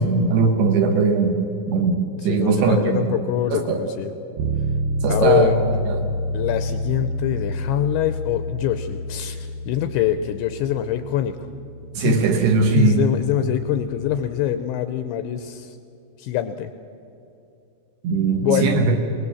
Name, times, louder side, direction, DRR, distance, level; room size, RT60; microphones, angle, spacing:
voice 1, 0.0-1.4 1.7-2.0 2.2-3.0 3.5-3.8 5.0-5.5 5.9-6.0 11.9-13.0 18.0-19.0, right 4 dB, 65° right, 3 dB, 2.8 m, -19 dB
voice 2, 2.2-4.1 5.1-5.6 6.3-11.4 12.0-12.2 12.7-15.8 16.2-16.7 18.4-18.7, left 11 dB, 85° left, 9 dB, 2.6 m, -24 dB
Bass guitar, 4.4-14.2, equal, 85° right, 4.0 m, -29 dB
23.5 x 19.5 x 7.1 m, 2.7 s
omnidirectional pair, 5.8 m